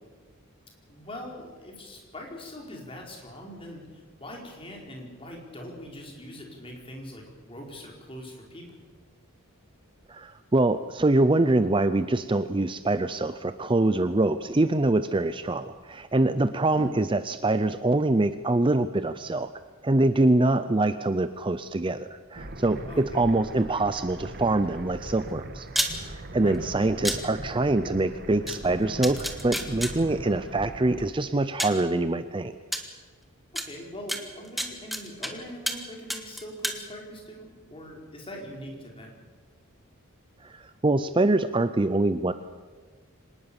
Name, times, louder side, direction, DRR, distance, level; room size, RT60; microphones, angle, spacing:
voice 1, 0.9-8.8 16.7-16.9 22.9-23.0 26.3-26.7 33.5-39.2, equal, 25° left, 0 dB, 4.7 m, -42 dB
voice 2, 10.1-19.5 19.8-25.7 26.1-32.5 40.4-42.3, right 2 dB, 25° right, 12 dB, 0.6 m, -24 dB
sound 1, 22.3-31.1, right 1 dB, 45° right, 1.6 m, -40 dB
sound 2, 25.7-25.9 27.0-27.2 28.5-28.6 29.0-29.9 31.0-31.1 31.6-31.8 32.7-32.8 33.6-33.7 34.1-35.3 35.7-35.8 36.1-36.8, equal, ahead, 1.7 m, -29 dB
25.5 x 19.5 x 7.1 m, 1.4 s
head